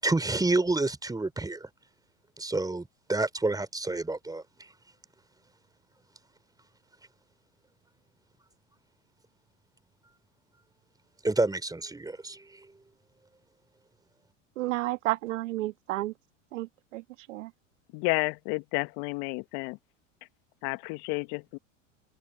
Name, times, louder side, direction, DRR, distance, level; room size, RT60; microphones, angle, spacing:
voice 1, 0.0-1.7 2.4-4.7 11.2-12.7, right 2 dB, 10° right, 4.5 m, -29 dB
voice 2, 14.6-16.1 16.5-17.5, right 16 dB, 75° right, 1.5 m, -32 dB
voice 3, 17.9-19.8 20.6-21.6, left 27 dB, 60° left, 1.6 m, -31 dB
hypercardioid pair, 90°, 38 cm